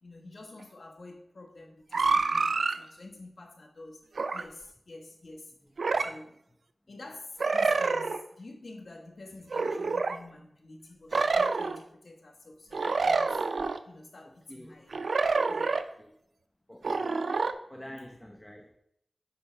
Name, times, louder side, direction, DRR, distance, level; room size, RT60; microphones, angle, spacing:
voice 1, 0.0-4.0 4.3-5.5 6.0-6.4 6.9-13.5 13.8-14.9 15.5-15.8, left 2 dB, 65° left, 1 dB, 1.4 m, -48 dB
sound 1, 1.9-2.8 4.2-4.4 5.8-6.1 7.4-8.2 9.5-10.2 11.1-11.8 12.7-13.8 14.9-15.8 16.8-17.5, right 4 dB, 75° right, 0.4 m, -27 dB
voice 2, 14.2-14.8 16.0-16.1 16.7-17.3 17.7-18.8, left 1 dB, 10° left, 2 dB, 0.8 m, -48 dB
8.3 x 5.7 x 3.3 m, 0.76 s
wide cardioid pair, 65°, 0 cm